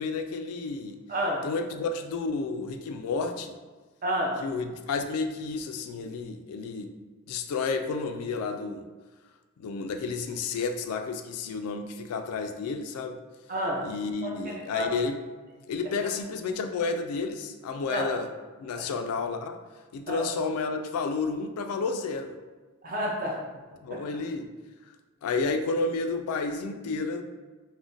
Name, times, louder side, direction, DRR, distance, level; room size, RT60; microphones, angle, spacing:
voice 1, 0.0-1.0 1.4-3.5 4.4-6.9 7.3-8.8 9.6-13.2 13.8-15.2 15.7-18.3 18.6-19.6 19.9-22.3 23.8-24.5 25.2-27.2, left 4 dB, 85° left, 9 dB, 0.3 m, -31 dB
voice 2, 1.1-1.5 4.0-4.4 13.5-13.8 14.2-14.9 17.9-18.1 18.7-18.9 20.1-20.3 22.8-23.4 23.9-24.0, equal, 40° right, -2 dB, 0.5 m, -30 dB
2.5 x 2.1 x 3.6 m, 1.3 s
head